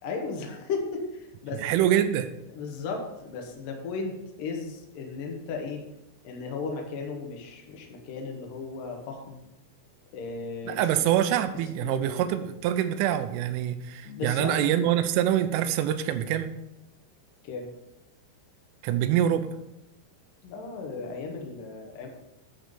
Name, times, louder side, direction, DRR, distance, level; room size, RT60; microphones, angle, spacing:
voice 1, 0.0-1.6 2.5-5.8 6.2-9.4 10.1-10.9 11.8-12.3 14.0-14.6 17.5-17.7 20.4-22.1, left 4 dB, 75° left, 2 dB, 2.0 m, -35 dB
voice 2, 1.6-2.3 10.7-16.5 18.8-19.5, right 11 dB, 85° right, 10 dB, 3.1 m, -25 dB
11.5 x 3.8 x 6.8 m, 0.91 s
omnidirectional pair, 5.6 m